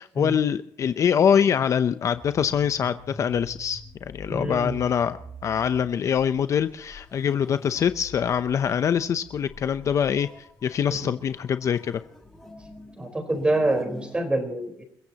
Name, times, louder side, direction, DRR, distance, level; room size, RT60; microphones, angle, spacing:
voice 1, 0.0-10.3 10.6-12.0, left 8 dB, 45° left, 11 dB, 0.7 m, -24 dB
sound 1, 2.1-14.2, left 1 dB, 5° left, 4.9 m, -46 dB
voice 2, 4.3-4.8 10.9-11.1 13.0-14.8, right 2 dB, 15° right, 6 dB, 4.4 m, -26 dB
29.5 x 15.5 x 3.0 m, 0.68 s
cardioid pair, 130°, 7 cm